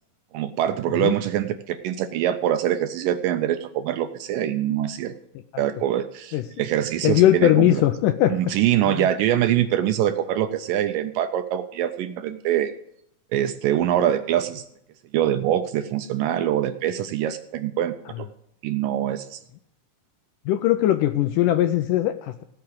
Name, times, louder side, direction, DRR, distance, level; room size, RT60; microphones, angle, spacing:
voice 1, 0.3-5.2 5.6-7.8 8.3-12.7 13.3-14.6 15.1-18.3 18.6-19.4, right 11 dB, 80° right, 10 dB, 2.0 m, -24 dB
voice 2, 7.0-8.4 8.9-9.1 20.5-22.4, left 13 dB, 80° left, 8 dB, 1.9 m, -20 dB
17.0 x 5.8 x 7.8 m, 0.76 s
omnidirectional pair, 4.3 m